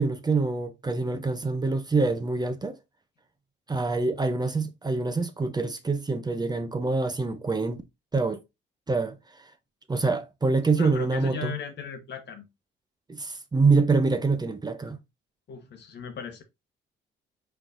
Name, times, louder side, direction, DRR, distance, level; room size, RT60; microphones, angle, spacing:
voice 1, 0.0-2.8 3.7-7.8 8.1-8.4 8.9-9.2 9.9-11.5 13.1-15.0, right 3 dB, 20° right, 0.6 m, -25 dB
voice 2, 10.8-12.5 15.5-16.4, left 6 dB, 60° left, 1.1 m, -36 dB
4.5 x 3.8 x 2.5 m
cardioid pair, 90°, 20 cm